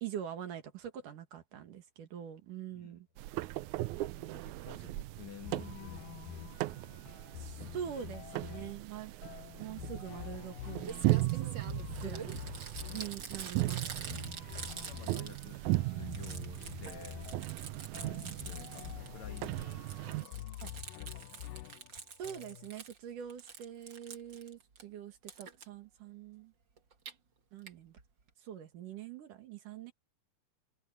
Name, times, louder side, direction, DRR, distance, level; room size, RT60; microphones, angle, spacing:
voice 1, 0.0-3.1 7.4-9.1 9.6-11.6 12.0-12.4 12.9-14.4 22.2-26.5 27.5-28.0 28.4-29.9, right 9 dB, 65° right, 3.3 m, -44 dB
voice 2, 2.7-3.2 4.2-6.4 6.7-7.0 7.6-7.8 8.3-8.6 14.8-17.2 18.0-21.6, left 8 dB, 60° left, 2.5 m, -53 dB
sound 1, 3.2-20.3, right 18 dB, 85° right, 1.7 m, -37 dB
sound 2, 5.4-22.7, left 13 dB, 80° left, 2.2 m, -47 dB
Crumpling crinkling, 10.6-10.7 10.8-15.7 16.0-19.1 19.4-23.0 23.3-24.8 25.3-25.6 26.8-27.1 27.7-27.8 28.0-28.1 28.3-28.4, right 6 dB, 40° right, 2.1 m, -46 dB
omnidirectional pair, 4.1 m